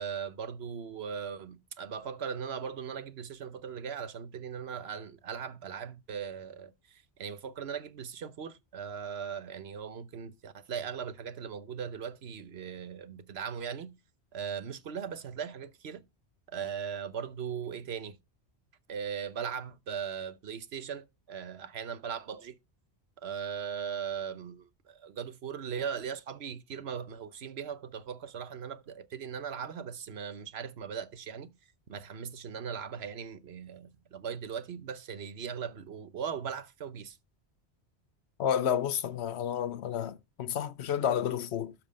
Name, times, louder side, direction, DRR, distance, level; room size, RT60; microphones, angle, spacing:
voice 1, 0.0-13.9 14.3-16.0 16.5-18.2 18.9-22.6 23.2-31.5 31.9-37.2, right 7 dB, 70° right, 1.1 m, -39 dB
voice 2, 38.4-41.7, left 9 dB, 80° left, 1.0 m, -30 dB
12.5 x 4.4 x 5.2 m
omnidirectional pair, 1.1 m